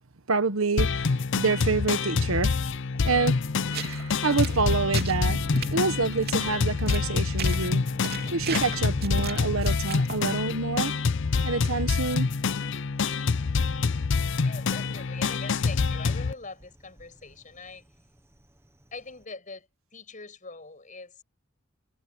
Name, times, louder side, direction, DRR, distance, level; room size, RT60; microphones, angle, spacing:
voice 1, 0.3-2.6 3.0-7.9 8.3-10.9 11.4-12.3, right 4 dB, 75° right, 1.2 m, -27 dB
sound 1, 0.8-16.3, left 4 dB, 60° left, 0.6 m, -26 dB
Thunder, 1.7-19.3, equal, 10° right, 1.2 m, -45 dB
sound 2, 3.7-4.0 4.3-5.2 5.6-5.7 6.1-6.3 6.9-7.1 7.4-7.7 8.0-10.2, right 6 dB, 50° right, 3.2 m, -36 dB
voice 2, 14.4-17.8 18.9-21.2, left 3 dB, 35° left, 7.1 m, -43 dB
head